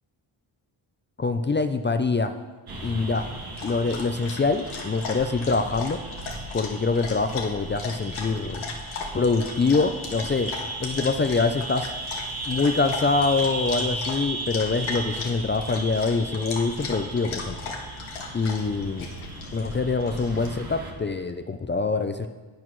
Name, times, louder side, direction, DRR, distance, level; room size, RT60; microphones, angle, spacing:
voice 1, 1.2-2.3 2.8-3.3 3.6-6.0 6.5-8.6 9.1-10.5 10.8-11.9 12.5-17.6 18.3-19.1 19.5-22.3, left 4 dB, 25° left, 8 dB, 0.4 m, -25 dB
sound 1, 2.7-20.9, right 2 dB, 45° right, 1.6 m, -36 dB
Dog, 3.1-20.5, left 4 dB, 85° left, 1.5 m, -38 dB
12.0 x 8.8 x 3.1 m, 1.3 s
cardioid pair, 90°, 49 cm